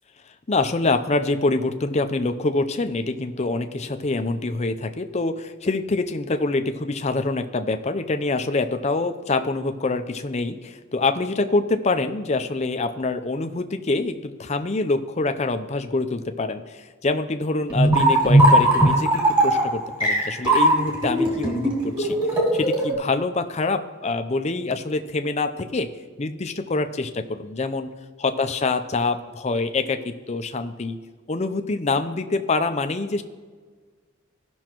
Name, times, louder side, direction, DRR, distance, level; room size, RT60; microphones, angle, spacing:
voice 1, 0.5-22.2 22.5-25.9 26.2-27.9 28.2-30.0 30.3-31.0 31.3-33.2, left 3 dB, 30° left, 7 dB, 0.5 m, -25 dB
sound 1, 17.7-22.9, right 1 dB, 20° right, 2.6 m, -19 dB
17.0 x 6.2 x 3.0 m, 1.5 s
head